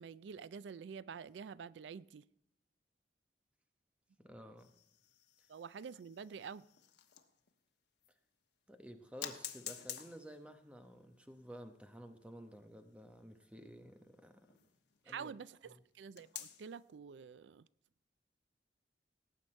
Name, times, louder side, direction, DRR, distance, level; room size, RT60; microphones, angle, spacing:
voice 1, 0.0-2.2 5.5-6.6 15.1-17.7, right 6 dB, 90° right, 0.4 m, -48 dB
voice 2, 4.2-4.7 8.7-14.6 15.0-15.3 15.7-15.8, equal, 5° right, 0.9 m, -53 dB
sound 1, 4.6-7.5 8.0-8.1 9.2-15.2 16.1-16.8, left 10 dB, 75° left, 1.1 m, -51 dB
18.0 x 8.3 x 4.4 m
head